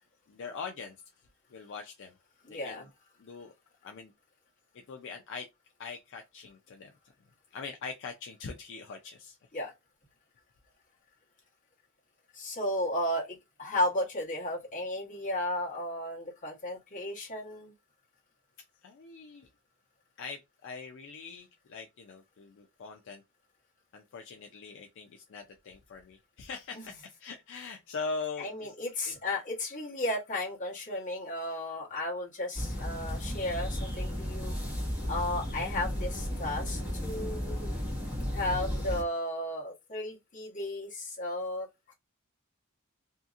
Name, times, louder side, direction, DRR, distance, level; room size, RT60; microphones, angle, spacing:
voice 1, 0.3-2.2 2.5-2.9 3.2-3.5 3.8-4.1 4.7-5.5 5.8-6.9 7.5-9.4 18.8-19.5 20.2-23.2 23.9-28.7 29.0-29.1 41.9-42.0, left 4 dB, 60° left, 0.4 m, -42 dB
voice 2, 2.4-2.8 9.5-9.7 12.3-17.7 26.7-26.8 28.4-34.5 35.1-37.7 38.3-41.7, left 1 dB, 35° left, 1.1 m, -34 dB
sound 1, 32.5-39.0, equal, 5° right, 1.2 m, -34 dB
2.8 x 2.6 x 2.4 m
head